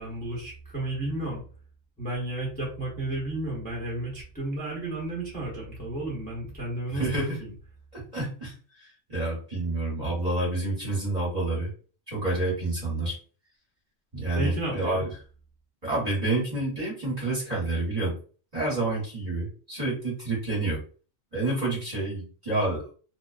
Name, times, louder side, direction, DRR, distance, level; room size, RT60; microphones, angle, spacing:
voice 1, 0.0-1.4 2.0-7.5 14.3-15.1, right 1 dB, 10° left, -4 dB, 0.9 m, -32 dB
voice 2, 6.9-7.4 7.9-11.7 12.1-13.2 14.1-15.1 15.8-18.1 18.5-20.8 21.3-22.8, right 2 dB, 35° right, -5 dB, 1.2 m, -28 dB
2.5 x 2.1 x 2.3 m, 0.39 s
omnidirectional pair, 1.3 m